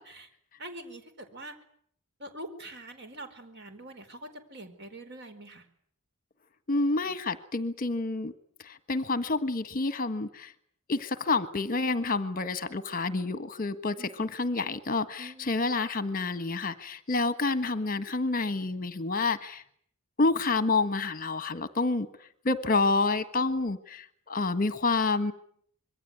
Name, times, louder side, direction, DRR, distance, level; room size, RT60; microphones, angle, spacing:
voice 1, 0.6-1.5 2.2-5.7 14.0-14.3 15.2-15.5, right 1 dB, 50° right, 8 dB, 4.5 m, -44 dB
voice 2, 6.7-8.3 8.6-10.5 10.9-19.6 20.2-22.1 22.4-25.3, left 3 dB, 40° left, 12 dB, 1.5 m, -28 dB
26.5 x 22.5 x 9.5 m, 0.65 s
head